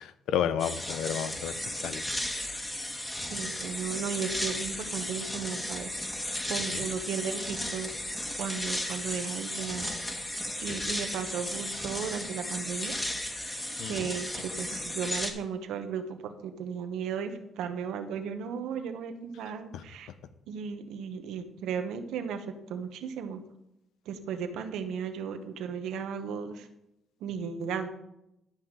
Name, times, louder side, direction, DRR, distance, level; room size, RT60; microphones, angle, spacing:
voice 1, 0.0-2.0 6.7-6.8 10.7-10.8 13.8-14.1 19.7-19.8, left 9 dB, 85° left, 13 dB, 0.7 m, -32 dB
sound 1, 0.6-15.3, left 1 dB, 15° left, 1.7 m, -35 dB
voice 2, 3.3-5.9 6.5-7.9 8.4-9.9 10.6-13.1 13.9-20.1 20.5-23.4 24.1-26.7 27.2-27.9, right 7 dB, 85° right, 8 dB, 1.1 m, -35 dB
11.5 x 5.7 x 4.8 m, 0.84 s
cardioid pair, 90°, 0 cm